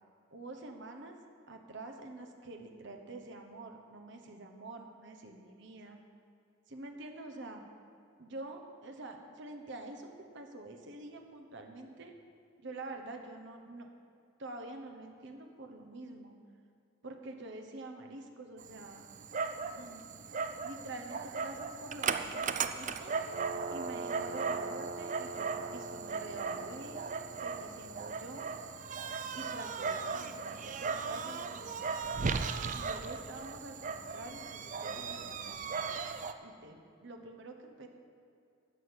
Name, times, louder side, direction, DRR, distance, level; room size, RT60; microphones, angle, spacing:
voice 1, 0.3-1.2 1.5-6.0 6.7-7.6 8.2-10.1 10.3-12.2 12.6-13.9 14.4-16.3 17.0-19.0 19.8-20.1 20.6-23.1 23.7-27.0 27.4-28.5 29.3-32.0 32.7-36.0 36.4-37.9, right 2 dB, 60° right, 4 dB, 1.2 m, -47 dB
Dog, 18.6-36.3, right 5 dB, 40° right, 0.5 m, -37 dB
11.5 x 6.3 x 8.7 m, 2.4 s
head